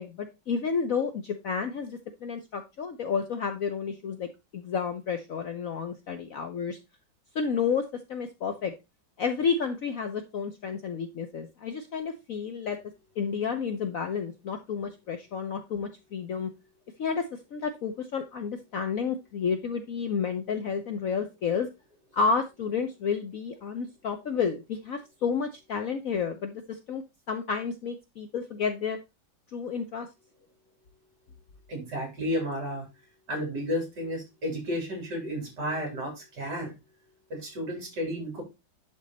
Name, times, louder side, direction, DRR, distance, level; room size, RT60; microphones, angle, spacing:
voice 1, 0.0-4.3 4.5-6.8 7.3-8.7 9.2-12.8 13.2-16.5 17.0-21.7 22.1-27.0 27.3-29.0 29.5-30.1, left 6 dB, 60° left, 7 dB, 1.0 m, -31 dB
voice 2, 31.7-32.9 33.3-36.7 37.3-38.4, equal, 55° right, 1 dB, 4.3 m, -32 dB
10.5 x 3.9 x 4.1 m, 0.24 s
omnidirectional pair, 2.1 m